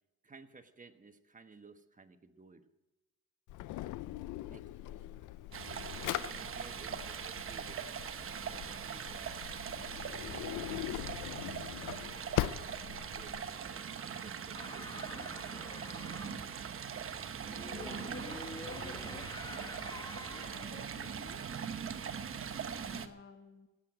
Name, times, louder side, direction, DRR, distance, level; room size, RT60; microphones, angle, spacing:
voice 1, 0.2-2.6 4.4-5.0 5.8-7.9 8.4-9.5 10.2-11.6 12.4-15.6, right 4 dB, 25° right, 8 dB, 1.2 m, -56 dB
Drawer open or close, 3.5-13.4, left 15 dB, 80° left, 0.5 m, -41 dB
Stream, 5.5-23.1, right 7 dB, 45° right, 1.1 m, -41 dB
sound 1, 14.5-16.4 17.4-20.8, left 2 dB, 15° left, 1.2 m, -47 dB
voice 2, 17.7-21.4 22.9-23.7, left 5 dB, 40° left, 4 dB, 1.3 m, -52 dB
16.5 x 8.0 x 9.0 m, 1.1 s
cardioid pair, 90°, 30 cm